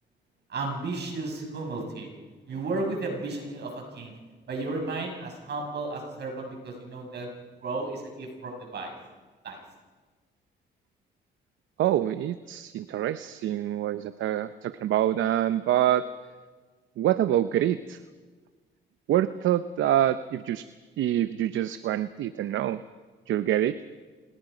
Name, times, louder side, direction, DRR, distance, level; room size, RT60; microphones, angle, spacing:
voice 1, 0.5-2.1 2.5-4.1 4.5-7.3 7.6-8.9 9.4-9.6, right 3 dB, 60° right, 2 dB, 6.5 m, -33 dB
voice 2, 11.8-16.1 17.0-18.0 19.1-20.7 21.0-22.8 23.3-23.8, right 12 dB, 75° right, 12 dB, 0.7 m, -26 dB
28.0 x 20.0 x 5.1 m, 1.4 s
cardioid pair, 90°, 20 cm